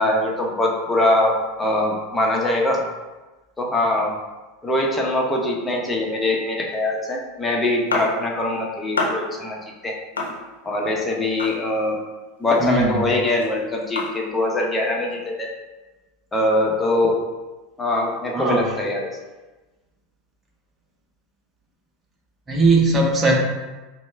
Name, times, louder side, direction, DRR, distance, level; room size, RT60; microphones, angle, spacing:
voice 1, 0.0-2.8 3.6-4.1 4.6-9.9 10.6-12.0 12.4-15.5 16.3-17.2 17.8-19.1, left 1 dB, 15° left, -1 dB, 1.0 m, -22 dB
sound 1, 7.9-8.5 8.9-9.5 10.2-10.9 11.4-12.1 12.4-14.4, left 3 dB, 90° left, 0.8 m, -29 dB
voice 2, 12.6-13.1 18.3-18.7 22.5-23.3, right 2 dB, 20° right, -1 dB, 1.1 m, -19 dB
5.2 x 2.3 x 3.4 m, 1.2 s
hypercardioid pair, 85°, 0 cm